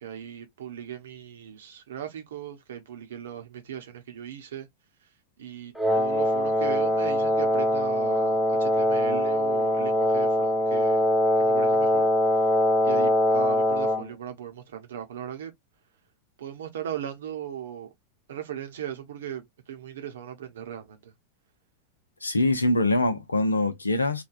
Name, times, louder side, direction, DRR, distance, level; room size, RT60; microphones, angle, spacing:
voice 1, 0.0-4.7 5.4-11.1 11.4-12.1 12.8-15.5 16.4-17.9 18.3-19.4 19.7-21.0, right 10 dB, 60° right, 0.8 m, -37 dB
Wind instrument woodwind instrument, 5.8-14.1, left 1 dB, 5° left, 0.6 m, -23 dB
voice 2, 22.2-24.2, left 2 dB, 80° left, 0.5 m, -24 dB
3.2 x 2.2 x 2.5 m
figure-of-eight pair, 90°, 0 cm